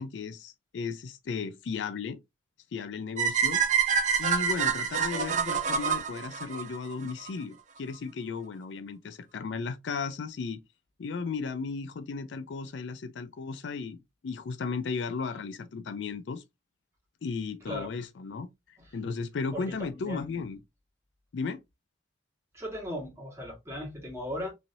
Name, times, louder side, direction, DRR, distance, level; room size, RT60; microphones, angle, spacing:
voice 1, 0.0-2.2 2.7-3.6 4.2-10.6 11.0-14.0 14.2-16.4 17.2-18.5 18.9-20.6 21.3-21.6, left 5 dB, 80° left, 0.4 m, -35 dB
sound 1, 3.2-7.3, right 7 dB, 45° right, 0.5 m, -27 dB
voice 2, 19.5-20.4 22.5-24.5, left 1 dB, 15° right, 1.3 m, -37 dB
3.1 x 2.7 x 2.6 m
head